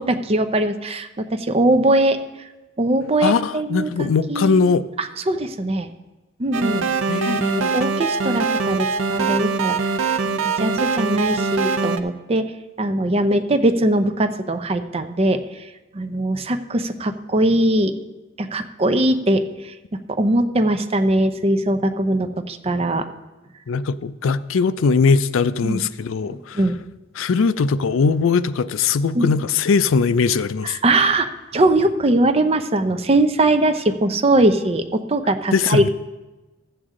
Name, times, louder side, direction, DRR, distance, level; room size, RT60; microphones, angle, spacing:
voice 1, 0.0-2.2 2.8-4.6 5.0-5.9 6.4-6.9 7.2-7.4 7.7-9.9 10.2-12.5 12.8-15.4 15.9-17.9 18.4-19.7 20.1-23.1 25.6-25.8 26.5-26.8 29.1-29.3 30.6-35.9, right 1 dB, 30° right, 8 dB, 0.6 m, -20 dB
voice 2, 3.2-4.8 7.1-7.7 23.7-26.6 27.2-30.8 35.5-35.9, left 5 dB, 80° left, 15 dB, 0.4 m, -20 dB
sound 1, 6.5-12.0, right 4 dB, 90° right, 0.6 m, -23 dB
14.0 x 8.0 x 3.7 m, 1.1 s
head